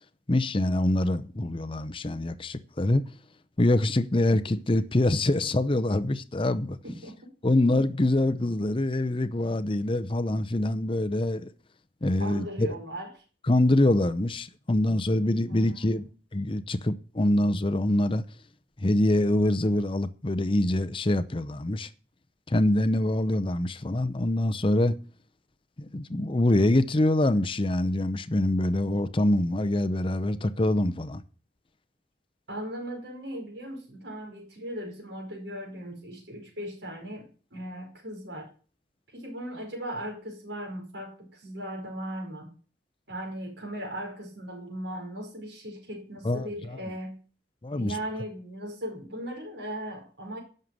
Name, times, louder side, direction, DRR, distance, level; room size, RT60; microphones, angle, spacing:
voice 1, 0.3-3.1 3.6-6.8 7.4-11.5 12.0-12.7 13.5-16.0 16.3-18.2 18.8-21.9 22.5-25.0 25.8-31.2 46.2-46.5 47.6-47.9, left 1 dB, 30° left, 0.7 m, -25 dB
voice 2, 12.2-13.1 15.5-16.1 32.5-38.5 39.1-42.5 43.1-47.2 47.7-50.4, right 1 dB, 70° right, 4.9 m, -38 dB
11.0 x 6.7 x 7.7 m
head